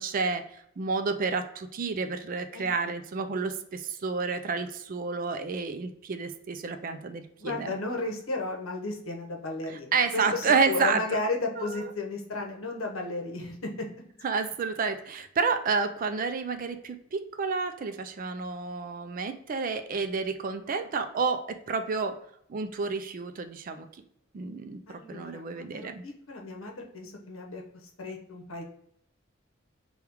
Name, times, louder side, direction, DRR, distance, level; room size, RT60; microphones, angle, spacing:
voice 1, 0.0-7.7 9.9-11.0 11.6-11.9 14.2-22.2 22.5-23.9 24.3-26.0, right 4 dB, 40° right, 8 dB, 0.4 m, -30 dB
voice 2, 7.4-13.9 24.9-28.6, left 2 dB, 75° left, 2 dB, 0.9 m, -34 dB
3.5 x 2.3 x 4.4 m, 0.71 s
head